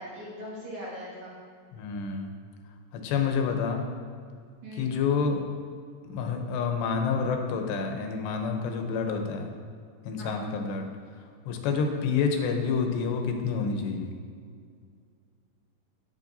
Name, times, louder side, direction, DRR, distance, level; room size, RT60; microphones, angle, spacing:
voice 1, 0.0-1.4 4.6-5.0 10.2-10.6, equal, 60° right, -7 dB, 2.4 m, -40 dB
voice 2, 1.7-2.3 2.9-3.9 4.8-5.4 6.0-9.5 10.1-10.9 11.5-14.1, left 5 dB, 85° left, 4 dB, 3.0 m, -28 dB
9.4 x 8.6 x 2.7 m, 2.2 s
omnidirectional pair, 4.8 m